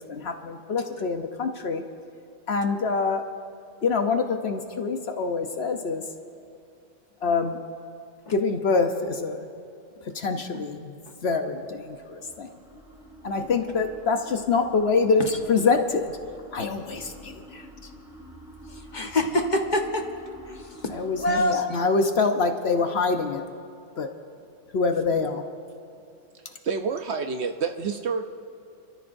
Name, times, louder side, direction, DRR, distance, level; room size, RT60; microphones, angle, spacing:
voice 1, 0.0-1.8 2.5-3.2 3.8-6.0 7.2-7.6 8.3-9.4 10.1-10.9 11.2-12.5 13.2-15.2 15.5-16.1 16.5-17.6 20.9-23.4 24.0-24.1 24.7-25.4, left 4 dB, 55° left, 6 dB, 0.9 m, -25 dB
sound 1, 11.1-21.4, equal, 5° right, 3.2 m, -48 dB
voice 2, 18.6-20.1 20.5-21.9, left 1 dB, 35° left, 3 dB, 1.2 m, -27 dB
voice 3, 26.3-28.3, right 5 dB, 60° right, 6 dB, 0.8 m, -29 dB
28.5 x 13.5 x 2.6 m, 2.6 s
omnidirectional pair, 1.4 m